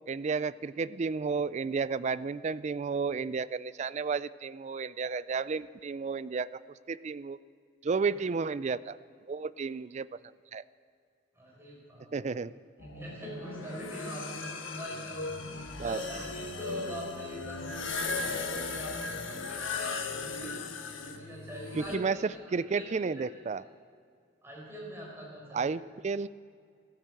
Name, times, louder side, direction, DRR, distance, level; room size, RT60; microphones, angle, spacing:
voice 1, 0.1-6.6 6.9-7.4 7.8-9.0 9.3-10.1 10.5-10.6 12.1-12.5 15.8-16.0 21.8-22.2 22.5-23.6 25.5-26.3, right 5 dB, 35° right, 17 dB, 0.3 m, -32 dB
voice 2, 11.3-12.4 12.8-20.6 21.0-23.3 24.4-25.8, equal, 10° right, -3 dB, 4.7 m, -44 dB
sound 1, 12.8-22.0, left 4 dB, 90° left, 1.4 m, -37 dB
14.5 x 12.5 x 7.7 m, 2.2 s
head